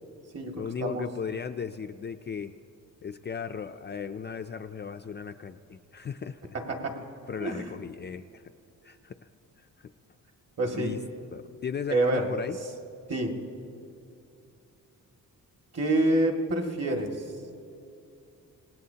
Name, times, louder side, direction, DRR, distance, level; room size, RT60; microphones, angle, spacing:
voice 1, 0.6-2.5 3.0-6.5 7.3-8.4 8.8-9.2 9.6-9.9 10.7-11.0 11.3-12.6, left 6 dB, 30° left, 7 dB, 0.4 m, -36 dB
voice 2, 10.6-10.9 11.9-12.3 13.1-13.4 15.7-17.2, right 1 dB, 45° right, 2 dB, 2.2 m, -27 dB
26.5 x 19.0 x 2.9 m, 2.6 s
wide cardioid pair, 135°, 34 cm